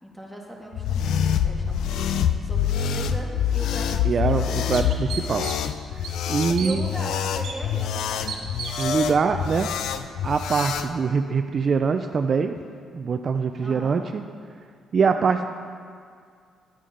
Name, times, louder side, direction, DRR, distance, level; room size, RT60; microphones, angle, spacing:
voice 1, 0.0-4.6 6.6-8.5 13.6-14.0, right 1 dB, ahead, -2 dB, 1.9 m, -39 dB
sound 1, 0.7-10.9, left 8 dB, 80° left, 0.4 m, -26 dB
voice 2, 4.1-5.5 6.3-6.8 8.8-9.7 10.2-12.6 12.9-14.2 14.9-15.5, right 5 dB, 45° right, 7 dB, 0.4 m, -23 dB
sound 2, 4.3-4.4 4.7-5.7 6.0-6.8 7.4-7.6 8.3-8.9, right 6 dB, 75° right, 1.1 m, -34 dB
10.0 x 9.4 x 3.8 m, 2.1 s
cardioid pair, 90°, 0 cm